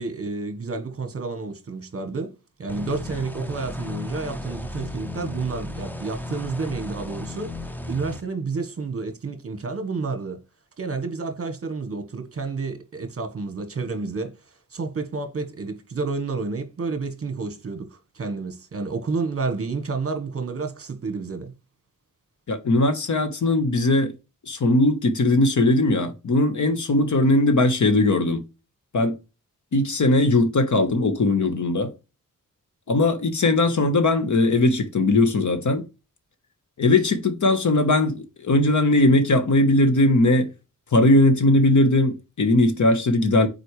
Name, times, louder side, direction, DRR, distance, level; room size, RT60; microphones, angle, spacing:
voice 1, 0.0-2.3 2.6-7.5 7.9-10.4 10.8-14.3 14.7-21.5, right 4 dB, 45° right, 1.2 m, -30 dB
sound 1, 2.7-8.2, left 2 dB, 5° left, 0.6 m, -35 dB
voice 2, 22.5-24.1 24.5-28.4 28.9-29.1 29.7-31.9 32.9-35.9 36.8-40.5 40.9-43.5, left 2 dB, 60° left, 1.2 m, -19 dB
7.9 x 4.4 x 3.2 m
wide cardioid pair, 135°, 33 cm